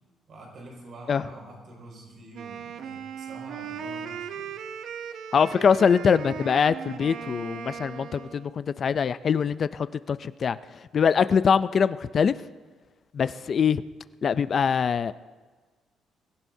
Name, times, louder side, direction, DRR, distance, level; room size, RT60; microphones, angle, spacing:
voice 1, 0.3-4.6, right 1 dB, 50° right, -1 dB, 5.6 m, -46 dB
Wind instrument woodwind instrument, 2.3-8.5, right 7 dB, 65° right, 0.7 m, -38 dB
voice 2, 5.3-10.6 10.9-12.3 13.1-13.8 14.2-15.1, left 6 dB, 40° left, 14 dB, 0.4 m, -23 dB
23.5 x 15.5 x 2.7 m, 1.4 s
cardioid pair, 155°, 0 cm